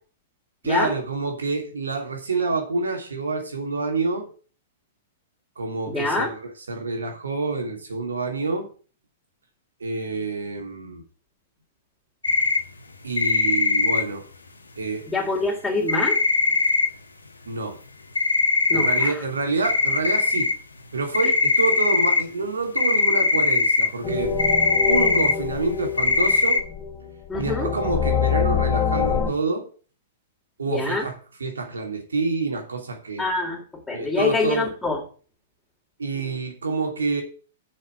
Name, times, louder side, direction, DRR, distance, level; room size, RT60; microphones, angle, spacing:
voice 1, 0.6-4.3 5.6-8.7 9.8-11.0 13.0-14.3 14.8-15.1 17.5-17.8 18.7-20.5 20.9-24.3 24.9-26.6 27.4-29.7 30.6-31.1 31.4-33.3 33.9-34.7 36.0-37.2, right 3 dB, 80° right, 3.0 m, -27 dB
voice 2, 5.9-6.3 15.1-16.2 18.7-19.2 21.2-21.3 27.3-27.7 30.7-31.1 33.2-35.0, left 3 dB, 5° left, 3.5 m, -25 dB
sound 1, 12.2-12.6 13.2-14.0 15.9-16.9 18.1-19.1 19.3-19.4 19.6-20.5 21.1-22.2 22.8-23.9 24.4-25.3 26.0-26.6, left 3 dB, 85° left, 1.5 m, -20 dB
sound 2, 24.0-29.3, left 7 dB, 25° left, 3.6 m, -25 dB
7.7 x 6.5 x 7.6 m
figure-of-eight pair, 105°, 0 cm